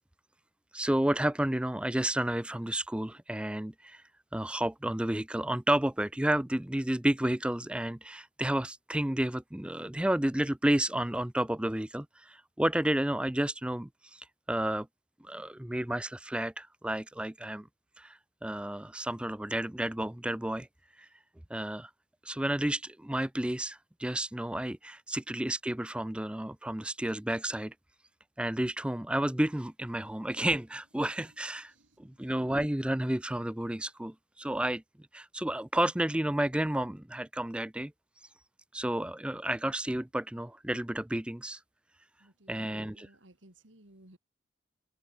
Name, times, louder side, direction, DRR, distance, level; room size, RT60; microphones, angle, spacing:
voice 1, 0.7-4.0 4.3-14.9 15.2-17.7 18.0-20.7 21.0-21.1 21.5-21.9 22.2-27.7 28.4-31.7 32.0-34.8 35.1-37.9 38.7-41.6 42.5-43.1, right 1 dB, 5° right, 0.4 m, -31 dB
voice 2, 42.2-44.2, right 1 dB, 85° right, 3.8 m, -58 dB
head